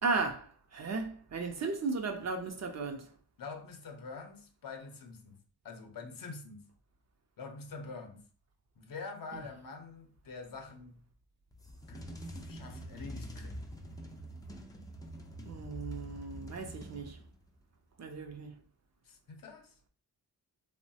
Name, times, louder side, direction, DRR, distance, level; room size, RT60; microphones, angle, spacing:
voice 1, 0.0-3.1 9.3-9.4 15.5-17.2 18.0-18.5, right 4 dB, 45° right, 0.5 m, -35 dB
voice 2, 3.4-6.7 7.4-8.2 8.8-11.0 11.9-13.6 19.0-19.8, left 4 dB, 55° left, 0.7 m, -46 dB
sound 1, 11.5-17.5, equal, 10° left, 0.4 m, -45 dB
3.0 x 2.1 x 2.6 m
cardioid pair, 75°, 40 cm